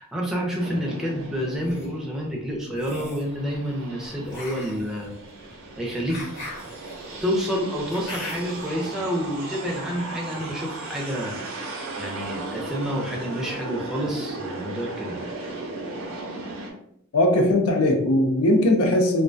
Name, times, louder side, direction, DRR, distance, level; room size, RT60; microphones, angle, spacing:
voice 1, 0.0-5.1 5.8-6.2 7.2-15.3, equal, ahead, -3 dB, 0.4 m, -29 dB
sound 1, 0.6-2.4 2.9-16.7, right 2 dB, 70° right, 0.5 m, -36 dB
sound 2, 1.4-1.9 2.7-3.3 4.3-8.7, left 1 dB, 50° left, 0.9 m, -39 dB
voice 2, 17.1-19.2, left 1 dB, 85° left, 3 dB, 0.5 m, -19 dB
2.3 x 2.1 x 2.5 m, 0.70 s
head